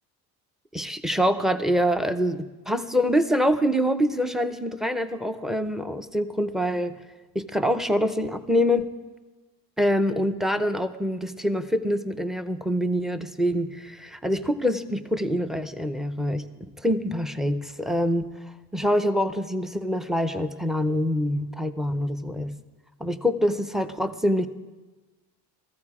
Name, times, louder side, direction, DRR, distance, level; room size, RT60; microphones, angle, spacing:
voice 1, 0.7-7.0 7.3-8.9 9.8-16.5 16.8-18.3 18.7-22.5 23.0-24.5, equal, ahead, 10 dB, 0.6 m, -25 dB
17.5 x 14.5 x 4.8 m, 1.2 s
cardioid pair, 140°, 41 cm